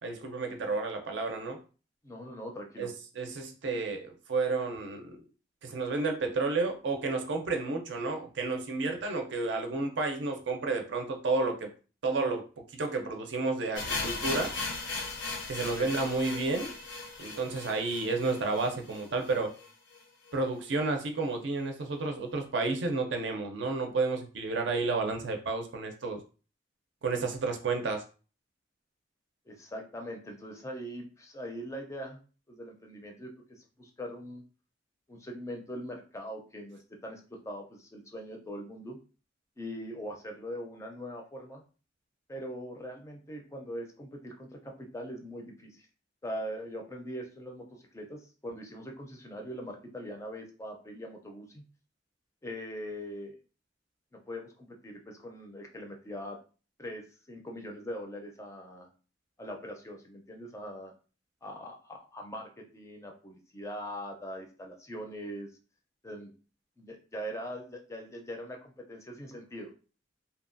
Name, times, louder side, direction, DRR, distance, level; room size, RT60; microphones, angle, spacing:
voice 1, 0.0-1.6 2.8-5.2 5.6-11.7 12.0-12.4 12.7-14.5 15.5-16.7 17.2-19.5 20.3-26.2 27.0-28.0, right 3 dB, 70° right, 4 dB, 0.5 m, -31 dB
voice 2, 2.0-2.9 15.7-16.0 29.5-32.2 32.5-34.4 35.1-39.0 39.6-41.6 42.3-45.9 46.2-51.6 52.4-53.4 54.1-56.4 56.8-58.9 59.4-60.9 61.4-65.6 66.0-66.3 66.8-69.7, equal, 15° left, 2 dB, 0.4 m, -42 dB
sound 1, 13.8-19.7 19.9-20.0 20.3-20.4 21.0-21.1, left 3 dB, 75° left, 0.6 m, -37 dB
2.8 x 2.2 x 2.5 m, 0.36 s
head